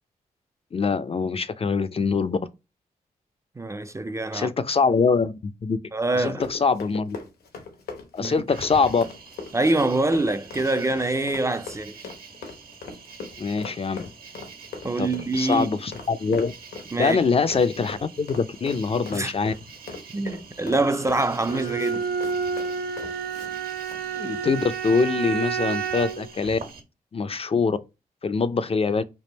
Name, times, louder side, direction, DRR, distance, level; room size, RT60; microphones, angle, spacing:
voice 1, 0.7-2.4 4.3-5.8 6.1-7.2 8.1-9.0 13.4-14.1 15.0-16.5 17.0-19.5 24.2-26.6 27.1-27.8 28.2-29.0, left 5 dB, 40° left, 0.4 m, -24 dB
voice 2, 3.6-4.5 5.9-6.4 8.2-8.3 9.5-12.1 14.8-15.7 16.9-17.2 19.1-19.3 20.1-22.1, right 2 dB, 20° right, 0.4 m, -25 dB
Run, 6.1-23.5 23.8-24.0, left 4 dB, 85° left, 1.1 m, -40 dB
Cricket, 8.5-26.8, right 5 dB, 70° right, 1.4 m, -46 dB
Bowed string instrument, 21.5-26.3, right 6 dB, 90° right, 0.7 m, -29 dB
3.5 x 2.5 x 4.0 m
cardioid pair, 55°, 16 cm